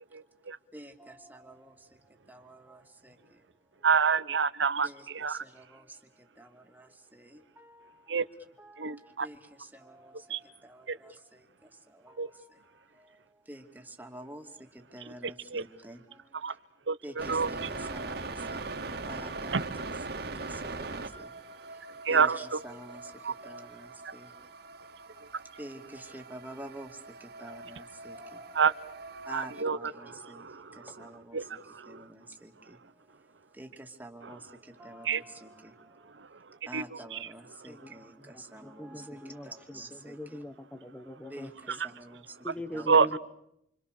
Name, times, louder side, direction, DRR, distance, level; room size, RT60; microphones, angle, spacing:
voice 1, 0.1-0.6 3.8-5.4 8.1-8.2 8.8-9.3 10.3-10.4 10.9-11.0 12.2-12.3 15.1-15.6 16.4-16.5 16.9-19.1 19.5-19.6 20.1-20.3 22.0-22.6 23.2-23.3 28.5-28.7 29.3-30.9 31.3-32.0 34.2-34.3 35.0-35.2 36.2-36.3 36.7-37.3 42.9-43.2, right 5 dB, 80° right, 14 dB, 0.9 m, -29 dB
voice 2, 0.7-3.5 4.8-8.2 8.6-16.6 17.0-18.8 19.0-21.3 21.7-24.3 25.1-25.3 25.6-28.6 29.3-32.8 33.5-36.2 36.7-40.4 41.3-42.4 42.7-43.1, right 1 dB, 10° right, 4 dB, 2.6 m, -49 dB
sound 1, 17.2-29.6, right 3 dB, 60° right, 2.1 m, -41 dB
voice 3, 38.2-41.8 42.4-43.2, equal, 5° left, 8 dB, 1.2 m, -42 dB
28.0 x 26.0 x 6.7 m, 0.78 s
head